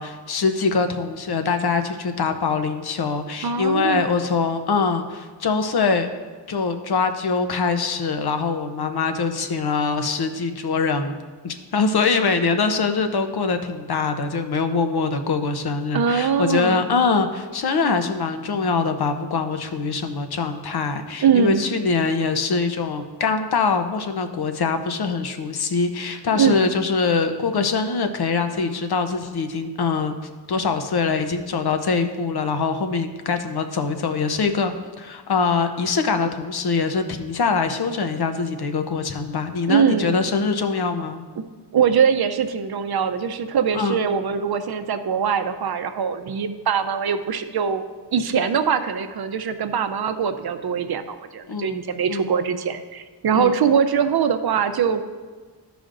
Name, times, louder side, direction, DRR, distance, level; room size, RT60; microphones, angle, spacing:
voice 1, 0.0-6.1 6.5-11.2 11.4-30.1 30.5-41.2 43.7-44.0 51.5-51.8 52.1-52.3 53.3-53.5, left 4 dB, 65° left, 7 dB, 0.8 m, -23 dB
voice 2, 3.4-4.1 15.9-16.8 21.2-21.6 26.3-26.7 39.7-40.2 41.4-41.5 41.7-47.8 48.1-55.0, right 7 dB, 65° right, 9 dB, 0.6 m, -22 dB
14.0 x 5.1 x 2.5 m, 1.4 s
cardioid pair, 75°, 42 cm